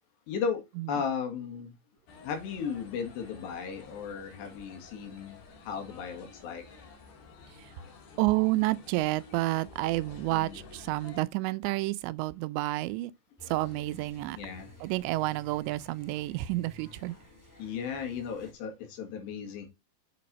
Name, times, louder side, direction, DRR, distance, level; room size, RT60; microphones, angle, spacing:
voice 1, 0.3-0.6 0.9-1.7 2.2-6.6 10.3-10.6 14.4-14.7 17.6-19.7, left 6 dB, 75° left, 4.0 m, -35 dB
sound 1, 2.1-11.2, left 3 dB, 60° left, 3.7 m, -51 dB
voice 2, 8.2-13.1 13.5-14.4 14.8-17.2, right 19 dB, 90° right, 2.8 m, -29 dB
sound 2, 13.4-18.5, equal, 5° left, 1.6 m, -53 dB
7.7 x 6.0 x 4.1 m
omnidirectional pair, 5.0 m